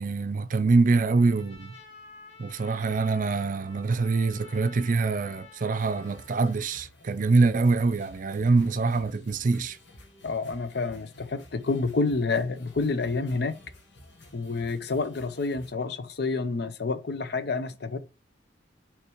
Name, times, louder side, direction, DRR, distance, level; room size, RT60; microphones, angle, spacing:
voice 1, 0.0-1.7 2.4-9.8, right 3 dB, 50° right, 0.5 m, -24 dB
Trumpet, 1.2-6.4, left 4 dB, 35° left, 2.0 m, -50 dB
sound 1, 5.7-15.7, left 1 dB, 85° left, 1.5 m, -52 dB
voice 2, 10.2-13.6 14.3-18.0, left 3 dB, 65° left, 0.7 m, -28 dB
6.5 x 3.3 x 4.5 m
head